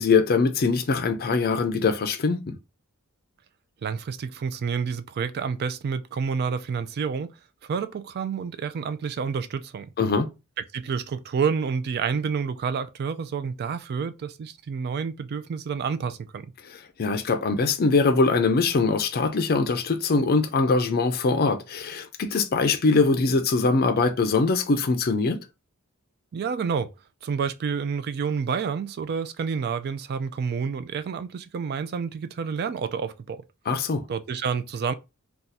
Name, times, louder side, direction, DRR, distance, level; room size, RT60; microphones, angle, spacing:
voice 1, 0.0-2.6 10.0-10.3 16.7-25.4 33.7-34.1, left 4 dB, 45° left, 0.5 m, -22 dB
voice 2, 3.8-7.3 7.6-9.9 10.7-16.5 26.3-26.9 27.2-33.4 34.1-34.9, right 6 dB, 45° right, 0.3 m, -29 dB
2.6 x 2.3 x 4.0 m
head